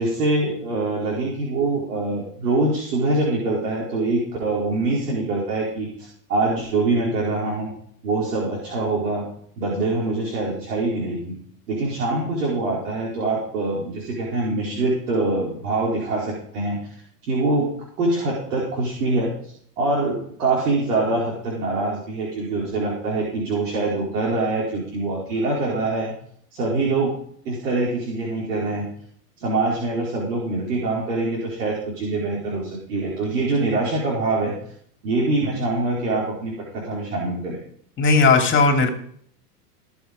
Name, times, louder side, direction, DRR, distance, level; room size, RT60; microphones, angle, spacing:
voice 1, 0.0-7.7 8.0-9.3 9.6-11.4 11.7-16.9 17.2-17.7 18.0-26.1 26.5-27.2 27.4-28.9 29.4-34.5 35.0-37.6, right 2 dB, 65° right, -4 dB, 4.8 m, -24 dB
voice 2, 38.0-38.9, left 4 dB, 25° left, 4 dB, 2.8 m, -16 dB
18.5 x 7.3 x 5.3 m, 0.62 s
hypercardioid pair, 95°, 48 cm